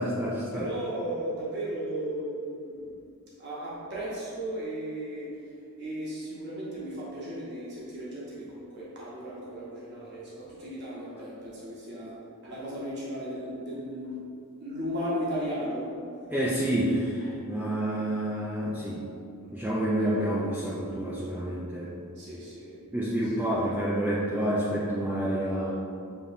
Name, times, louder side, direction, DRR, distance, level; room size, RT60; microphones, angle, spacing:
voice 1, 0.0-0.7 16.3-19.0 19.5-21.9 22.9-25.7, right 1 dB, 10° right, -7 dB, 0.3 m, -28 dB
voice 2, 0.5-12.1 12.4-14.3 14.6-15.9 16.2-16.3 19.4-19.7 22.1-22.8 23.2-23.3, right 1 dB, 50° right, -7 dB, 1.0 m, -36 dB
6.9 x 2.9 x 2.5 m, 2.5 s
head